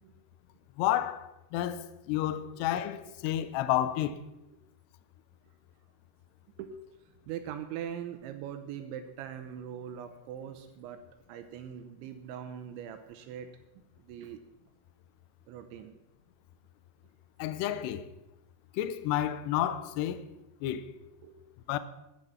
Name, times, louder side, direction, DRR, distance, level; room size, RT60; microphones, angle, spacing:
voice 1, 0.8-4.2 17.4-18.1 18.7-20.2 20.6-20.9 21.7-21.8, left 12 dB, 85° left, 2.4 m, -30 dB
voice 2, 2.2-2.5 4.5-4.6 6.6-6.8 7.1-11.0 11.3-13.5 14.0-14.4 15.5-16.0 21.2-21.4, right 9 dB, 75° right, 3.0 m, -42 dB
13.0 x 11.0 x 5.8 m
omnidirectional pair, 5.8 m